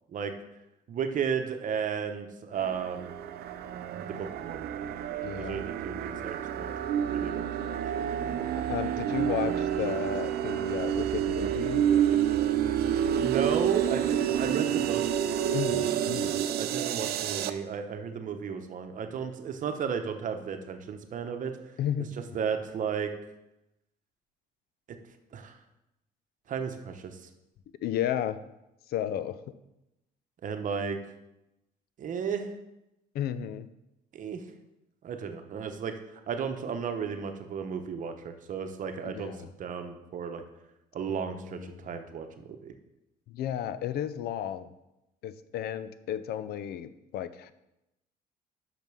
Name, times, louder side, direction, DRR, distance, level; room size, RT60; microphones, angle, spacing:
voice 1, 0.9-3.1 3.9-4.7 5.4-6.7 7.0-7.8 13.2-15.3 16.6-21.5 22.3-23.1 25.3-25.6 26.5-27.3 30.4-31.0 32.0-32.5 34.1-34.4 35.0-36.0 36.3-39.3 39.6-40.4 40.9-42.7, right 7 dB, 50° right, 6 dB, 0.9 m, -34 dB
sound 1, 2.6-17.5, right 10 dB, 70° right, 0.5 m, -29 dB
voice 2, 5.2-5.7 8.7-11.9 15.5-16.4 21.8-22.1 27.8-28.4 28.9-29.4 33.1-33.7 39.0-39.5 41.1-41.8 43.3-44.7 45.2-47.5, left 10 dB, 70° left, 14 dB, 0.5 m, -33 dB
5.9 x 5.3 x 6.2 m, 0.91 s
cardioid pair, 110°, 17 cm